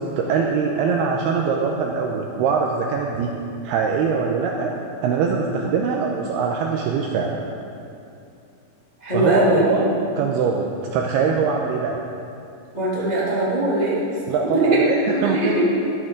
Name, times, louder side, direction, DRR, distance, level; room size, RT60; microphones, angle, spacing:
voice 1, 0.0-3.3 3.6-4.7 5.0-7.4 9.1-12.0 14.3-15.0 15.2-15.6, right 5 dB, 90° right, 0 dB, 2.3 m, -22 dB
voice 2, 9.0-9.6 12.7-14.0 14.5-14.8 15.1-15.7, right 1 dB, 20° left, -9 dB, 1.0 m, -20 dB
13.0 x 13.0 x 3.8 m, 2.6 s
omnidirectional pair, 5.3 m